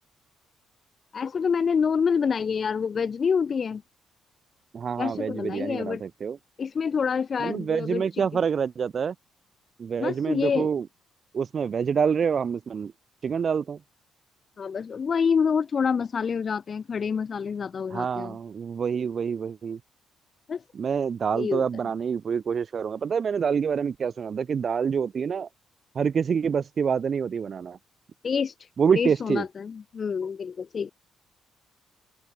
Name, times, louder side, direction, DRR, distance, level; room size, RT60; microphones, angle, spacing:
voice 1, 1.1-3.8 5.0-6.0 6.6-8.1 10.0-10.7 14.6-18.4 20.5-20.6 21.3-21.6 28.2-28.5 28.9-30.9, left 6 dB, 45° left, 3.3 m, -27 dB
voice 2, 4.7-6.4 7.4-9.1 9.8-10.9 11.3-12.9 13.2-13.8 17.9-19.8 20.7-25.5 25.9-27.8 28.8-29.5, right 6 dB, 50° right, 2.3 m, -26 dB
open air
cardioid pair, 90°, 0 cm